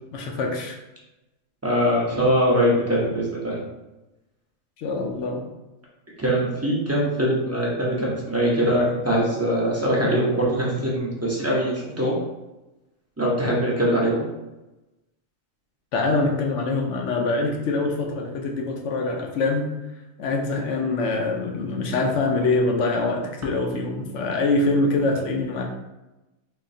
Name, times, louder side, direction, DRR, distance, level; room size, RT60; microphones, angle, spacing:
voice 1, 0.1-0.8 4.8-5.4 15.9-19.7 20.2-25.6, left 3 dB, 70° left, 2 dB, 0.9 m, -24 dB
voice 2, 1.6-3.6 6.2-12.2 13.2-14.2, equal, 15° right, -5 dB, 0.5 m, -22 dB
3.8 x 2.9 x 2.6 m, 1.0 s
omnidirectional pair, 1.4 m